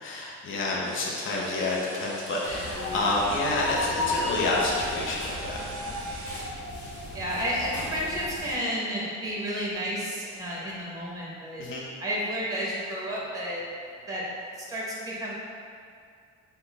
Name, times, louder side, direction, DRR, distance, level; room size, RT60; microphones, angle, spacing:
voice 1, 0.0-5.6 11.6-11.9, left 2 dB, 40° left, -4 dB, 0.6 m, -28 dB
sound 1, 0.8-6.5, right 2 dB, 50° right, 0.5 m, -43 dB
sound 2, 1.4-9.5 10.4-10.5 13.0-13.3 13.6-14.8, left 3 dB, 55° left, 1.2 m, -37 dB
sound 3, 2.4-8.6, left 1 dB, 75° left, 0.9 m, -38 dB
voice 2, 7.1-11.6 12.0-13.6 14.1-14.2 14.6-15.3, equal, 10° right, -5 dB, 0.8 m, -31 dB
3.2 x 2.1 x 3.8 m, 2.3 s
cardioid pair, 90°, 30 cm